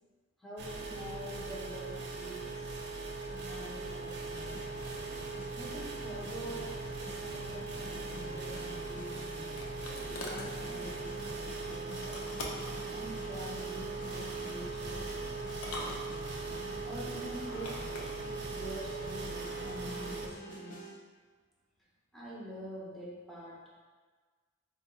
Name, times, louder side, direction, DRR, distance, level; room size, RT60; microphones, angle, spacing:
voice 1, 0.4-2.7 3.3-4.5 5.6-9.3 10.1-12.0 12.9-15.3 16.8-17.9 18.2-20.9 22.1-23.6, equal, ahead, -7 dB, 0.6 m, -46 dB
sound 1, 0.6-20.3, right 3 dB, 55° right, 0.4 m, -40 dB
sound 2, 4.3-20.9, equal, 40° left, 0.6 m, -48 dB
sound 3, 8.8-10.5 12.0-12.8 14.1-14.6 15.5-16.5 17.4-18.1, left 2 dB, 90° left, 0.5 m, -44 dB
4.1 x 2.3 x 2.9 m, 1.5 s
head